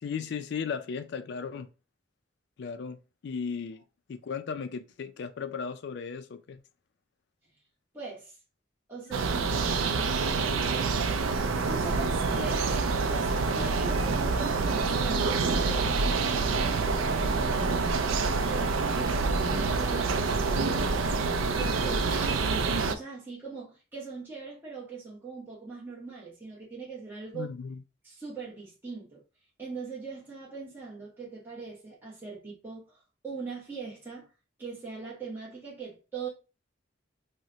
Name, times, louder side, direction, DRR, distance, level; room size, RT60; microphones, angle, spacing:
voice 1, 0.0-1.7 2.6-3.0 3.2-3.8 4.1-6.6 9.2-9.3 27.3-27.8, left 6 dB, 55° left, 0.3 m, -36 dB
voice 2, 7.9-8.4 8.9-9.6 11.7-17.7 18.2-21.0 21.5-27.5 28.0-29.2 29.6-34.3 34.6-36.3, right 4 dB, 10° right, 0.8 m, -41 dB
sound 1, 9.1-22.9, right 4 dB, 85° right, 0.4 m, -27 dB
2.9 x 2.1 x 3.7 m
head